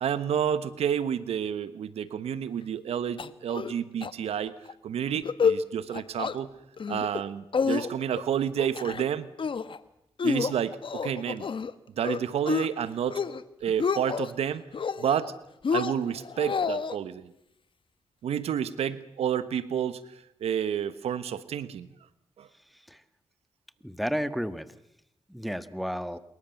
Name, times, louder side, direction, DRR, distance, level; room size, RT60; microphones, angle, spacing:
voice 1, 0.0-4.5 4.8-6.5 6.9-9.3 10.2-11.5 12.0-13.2 13.6-14.7 15.0-15.3 15.7-17.3 18.2-20.0 20.4-21.9 22.4-22.5, right 9 dB, 85° right, 14 dB, 1.2 m, -30 dB
sound 1, 3.2-3.7 4.0-4.1 4.5-4.7 5.1-5.6 5.9-6.4 6.8-7.2 7.5-8.2 8.6-9.1 9.4-9.8 10.2-11.7 12.0-12.7 13.0-13.4 13.7-14.3 14.7-15.3 15.6-17.0, left 5 dB, 55° left, 1.3 m, -29 dB
voice 2, 23.8-24.7 25.3-26.2, equal, ahead, 12 dB, 1.7 m, -32 dB
27.0 x 22.5 x 7.2 m, 0.81 s
cardioid pair, 55°, 10 cm